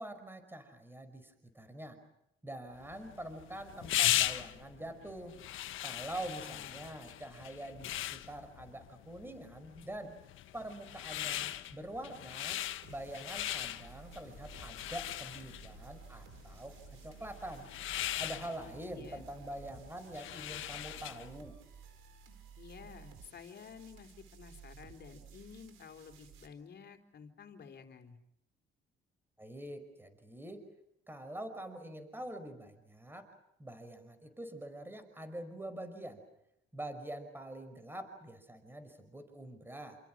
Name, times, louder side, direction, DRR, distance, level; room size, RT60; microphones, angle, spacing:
voice 1, 0.0-2.0 2.4-5.4 5.8-10.2 10.5-12.6 12.9-17.7 18.2-21.6 22.8-22.9 29.4-30.6 31.1-33.3 33.6-36.2 36.7-40.0, right 1 dB, 10° right, 9 dB, 5.5 m, -45 dB
sound 1, 2.8-21.4, left 13 dB, 85° left, 1.4 m, -39 dB
voice 2, 6.4-6.9 18.6-19.2 22.6-28.2, left 6 dB, 55° left, 7 dB, 3.8 m, -52 dB
sound 2, 12.8-26.5, right 7 dB, 90° right, 4.6 m, -55 dB
29.0 x 28.0 x 6.2 m, 0.79 s
cardioid pair, 90°, 20 cm